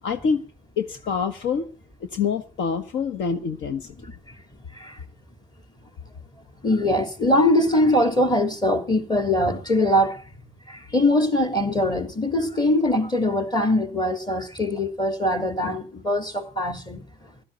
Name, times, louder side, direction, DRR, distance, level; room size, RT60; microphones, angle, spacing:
voice 1, 0.0-0.4 0.8-1.7 2.1-4.1, left 6 dB, 65° left, 1.4 m, -26 dB
voice 2, 4.0-4.4 4.7-5.0 6.6-10.2 10.7-17.1, left 1 dB, 20° left, 3.4 m, -22 dB
16.0 x 13.0 x 5.6 m
cardioid pair, 95°, 21 cm